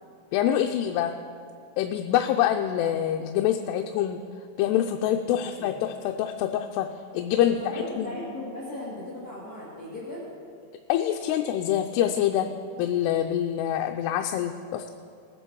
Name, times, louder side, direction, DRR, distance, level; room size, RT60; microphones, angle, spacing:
voice 1, 0.3-1.1 1.8-4.2 4.6-6.9 7.1-7.6 8.0-8.1 10.9-12.5 12.8-14.9, left 11 dB, 85° left, 4 dB, 2.6 m, -25 dB
voice 2, 5.4-5.8 7.4-10.3, left 1 dB, 30° left, -9 dB, 2.2 m, -37 dB
19.5 x 8.1 x 4.6 m, 2.4 s
omnidirectional pair, 4.7 m